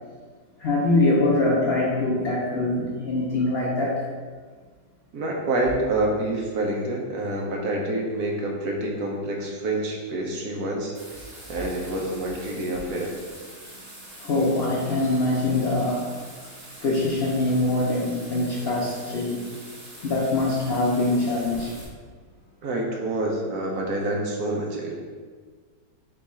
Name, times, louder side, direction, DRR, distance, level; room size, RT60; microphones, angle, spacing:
voice 1, 0.6-3.9 14.2-16.1 16.8-19.4 20.0-21.8, left 2 dB, 90° left, -5 dB, 0.5 m, -23 dB
voice 2, 5.1-11.0 11.5-13.1 22.6-24.9, right 1 dB, 70° right, -1 dB, 1.1 m, -27 dB
Bathtub (filling or washing), 10.9-21.8, right 1 dB, 50° right, 1.7 m, -44 dB
4.6 x 2.4 x 4.1 m, 1.5 s
omnidirectional pair, 1.9 m